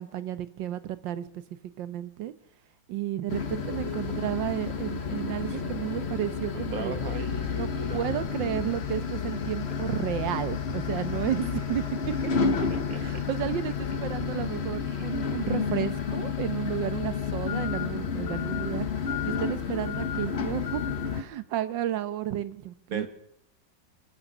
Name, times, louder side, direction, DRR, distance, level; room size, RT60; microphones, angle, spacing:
voice 1, 0.0-1.4 1.8-2.3 2.9-7.0 7.5-11.8 12.2-12.3 12.6-12.7 12.9-18.9 19.3-20.8 21.1-23.1, right 12 dB, 85° right, 14 dB, 1.6 m, -32 dB
sound 1, 3.3-21.2, left 6 dB, 40° left, 1.2 m, -31 dB
voice 2, 6.5-8.3 12.9-13.2 22.9-23.1, right 3 dB, 55° right, 8 dB, 1.7 m, -37 dB
23.5 x 8.9 x 6.6 m, 0.78 s
omnidirectional pair, 1.9 m